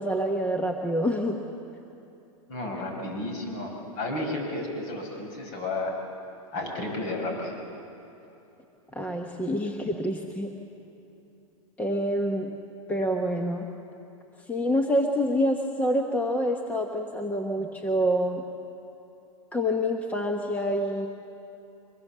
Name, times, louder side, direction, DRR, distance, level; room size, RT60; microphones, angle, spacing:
voice 1, 0.0-1.4 8.9-10.5 11.8-12.6 12.9-13.7 14.5-18.4 19.5-21.1, equal, 10° left, 3 dB, 1.1 m, -27 dB
voice 2, 2.5-5.9 6.5-7.6, left 2 dB, 45° left, 2 dB, 6.1 m, -32 dB
24.0 x 21.0 x 7.5 m, 2.9 s
hypercardioid pair, 140°, 18 cm